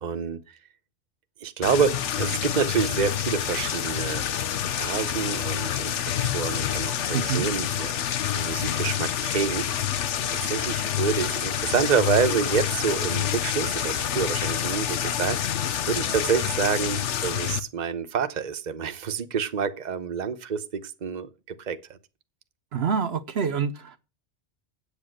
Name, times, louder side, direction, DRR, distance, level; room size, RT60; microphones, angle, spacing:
voice 1, 0.0-0.4 1.4-4.2 4.6-9.7 10.4-15.6 15.9-22.0, right 6 dB, 40° right, 1.0 m, -28 dB
sound 1, 1.6-17.6, left 10 dB, 90° left, 1.1 m, -27 dB
voice 2, 7.1-7.5 22.7-24.0, right 6 dB, 65° right, 1.1 m, -26 dB
8.4 x 8.3 x 6.4 m
omnidirectional pair, 1.2 m